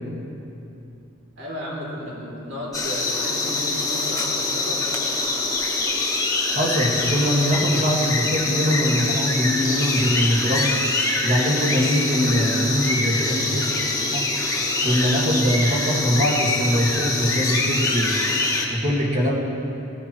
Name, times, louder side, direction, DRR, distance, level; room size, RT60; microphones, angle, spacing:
voice 1, 1.4-5.0, equal, 60° right, -4 dB, 3.3 m, -34 dB
sound 1, 2.7-18.7, left 3 dB, 15° left, 1.3 m, -24 dB
voice 2, 6.5-10.8 11.2-13.8 14.1-14.3 14.8-18.2 18.7-19.3, equal, 35° right, -2 dB, 1.9 m, -22 dB
18.5 x 13.0 x 3.2 m, 2.9 s
head